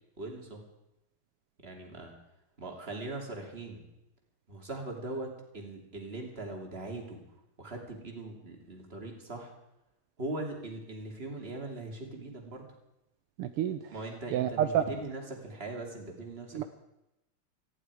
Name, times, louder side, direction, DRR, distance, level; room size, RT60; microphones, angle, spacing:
voice 1, 0.2-0.6 1.6-2.1 2.6-3.9 4.5-7.2 7.6-9.5 10.2-12.7 13.9-16.6, right 2 dB, 20° right, 1 dB, 2.9 m, -40 dB
voice 2, 13.4-13.8 14.3-14.8 16.5-16.6, right 10 dB, 75° right, 9 dB, 1.3 m, -28 dB
19.5 x 15.0 x 4.9 m, 0.89 s
omnidirectional pair, 3.3 m